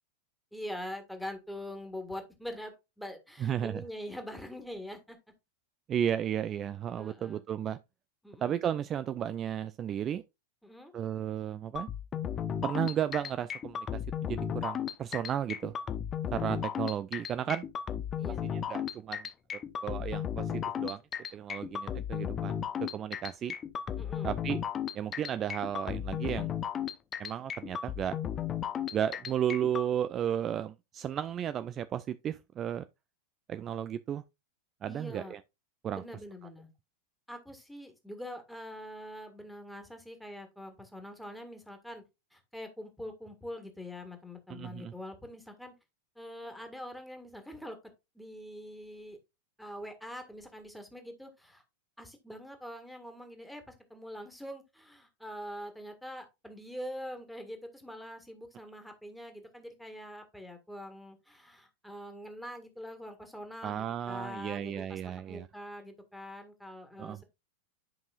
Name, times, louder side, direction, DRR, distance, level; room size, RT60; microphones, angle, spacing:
voice 1, 0.5-5.2 6.9-7.4 8.2-8.6 10.6-10.9 18.2-18.4 24.0-24.4 34.9-35.4 35.9-36.7 37.3-42.0 42.3-45.7 46.2-47.8 48.2-49.2 49.6-51.6 52.0-67.2, left 1 dB, ahead, 1.8 m, -44 dB
voice 2, 3.4-3.8 5.9-7.8 8.4-10.2 10.9-11.9 12.6-15.7 16.3-17.7 18.4-19.3 19.5-21.0 21.3-23.5 24.2-24.6 24.9-26.5 27.2-28.2 28.9-32.9 33.5-34.2 34.8-35.4 35.8-36.0 44.5-44.9 63.6-65.5 67.0-67.2, right 9 dB, 30° right, 0.4 m, -34 dB
sound 1, 11.8-29.9, left 8 dB, 25° left, 0.7 m, -35 dB
10.5 x 5.4 x 2.4 m
figure-of-eight pair, 90°, 0 cm